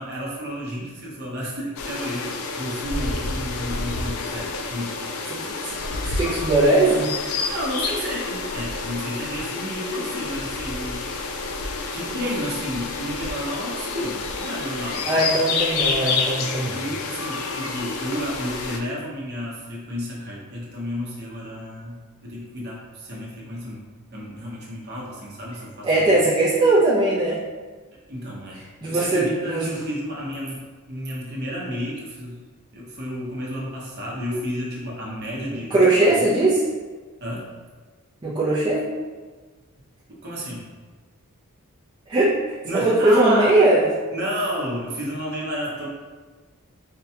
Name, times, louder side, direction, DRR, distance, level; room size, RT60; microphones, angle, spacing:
voice 1, 0.0-5.0 7.5-11.3 11.9-15.2 16.7-23.8 24.1-26.1 28.1-30.6 30.9-32.4 32.7-36.3 37.2-37.5 40.2-40.7 42.6-43.6 44.1-45.9, equal, 50° right, -4 dB, 0.8 m, -31 dB
sound 1, 1.8-18.8, left 4 dB, 70° left, 0.4 m, -29 dB
voice 2, 5.3-5.8 6.2-7.1 15.1-16.8 25.8-27.4 28.8-29.7 35.7-36.6 38.2-38.9 42.1-43.8, right 2 dB, 20° right, -8 dB, 0.5 m, -19 dB
4.4 x 2.2 x 2.8 m, 1.4 s
head